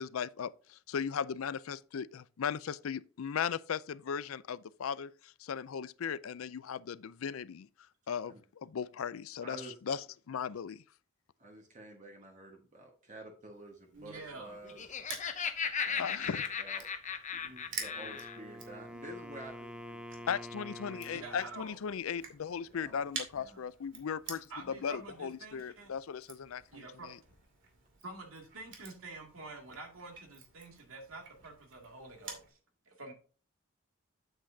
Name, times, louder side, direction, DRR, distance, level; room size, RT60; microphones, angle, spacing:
voice 1, 0.0-7.7 8.1-10.8 16.0-16.4 20.3-24.5 24.8-27.2, left 7 dB, 80° left, 0.4 m, -37 dB
voice 2, 9.4-9.8 11.4-15.1 15.8-16.9 17.3-20.3 20.6-21.2 22.8-23.0, right 1 dB, 35° right, 1.4 m, -50 dB
Crushing, 13.9-32.5, right 5 dB, 65° right, 2.5 m, -50 dB
voice 3, 13.9-14.5 17.4-17.7 21.2-21.8 23.3-23.6 24.5-25.9 26.7-27.1 28.0-32.6 32.9-33.1, right 3 dB, 80° right, 2.3 m, -48 dB
Laughter, 14.5-18.4, left 6 dB, 35° left, 0.8 m, -36 dB
Wind instrument woodwind instrument, 17.8-21.7, equal, 5° right, 0.5 m, -47 dB
8.8 x 7.8 x 2.7 m
head